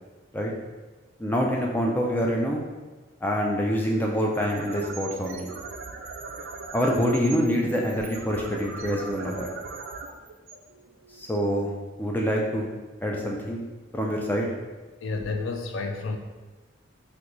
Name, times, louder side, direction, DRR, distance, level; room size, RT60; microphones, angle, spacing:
voice 1, 1.2-2.6 3.2-5.5 6.7-9.5 11.1-11.7 12.0-12.7 13.0-13.6 13.9-14.5, equal, 10° left, -1 dB, 0.3 m, -26 dB
sound 1, 4.3-11.3, right 4 dB, 80° right, 0.3 m, -39 dB
voice 2, 15.0-16.2, left 3 dB, 80° left, 5 dB, 0.4 m, -30 dB
3.0 x 2.2 x 3.7 m, 1.3 s
head